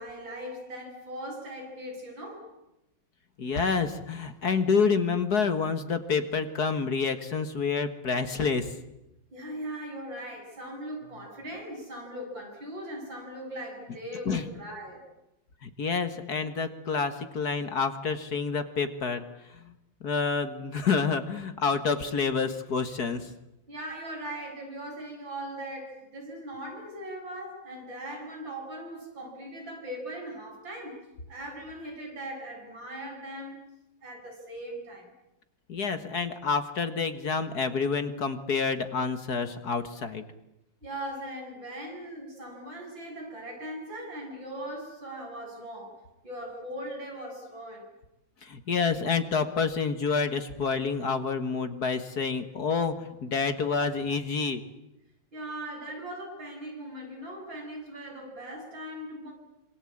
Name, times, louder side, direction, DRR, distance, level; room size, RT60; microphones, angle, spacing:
voice 1, 0.0-2.5 9.3-15.1 23.7-33.7 34.0-35.1 40.8-47.9 55.3-59.3, right 1 dB, 70° right, 1 dB, 8.6 m, -39 dB
voice 2, 3.4-8.8 14.3-14.5 15.6-19.7 20.0-23.3 35.7-40.2 48.4-54.6, left 5 dB, 50° left, 9 dB, 2.1 m, -28 dB
26.0 x 26.0 x 8.7 m, 0.90 s
omnidirectional pair, 2.2 m